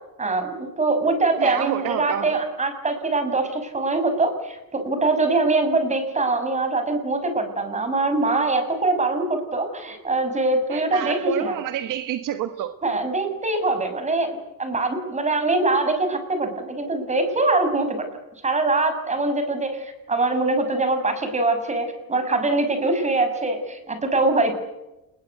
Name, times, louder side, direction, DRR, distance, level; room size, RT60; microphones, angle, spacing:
voice 1, 0.2-11.6 12.8-18.0 18.4-24.5, right 2 dB, 20° right, 8 dB, 6.2 m, -23 dB
voice 2, 1.4-2.4 10.7-12.7, right 11 dB, 60° right, 9 dB, 1.5 m, -28 dB
29.0 x 21.0 x 8.3 m, 0.97 s
cardioid pair, 135°, 37 cm